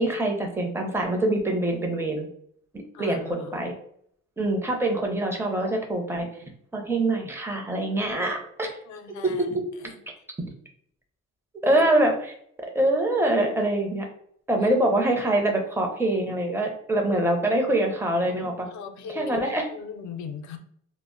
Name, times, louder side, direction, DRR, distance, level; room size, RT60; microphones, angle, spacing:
voice 1, 0.0-2.3 3.0-3.7 4.4-8.7 9.2-9.6 11.6-12.1 12.6-14.1 14.5-18.7 19.1-19.6, right 1 dB, 10° right, 2 dB, 0.6 m, -24 dB
voice 2, 2.9-3.5 8.8-10.0 11.6-11.8 14.6-14.7 18.7-20.6, left 6 dB, 70° left, 6 dB, 0.5 m, -39 dB
2.0 x 2.0 x 3.7 m, 0.66 s
cardioid pair, 90°, 30 cm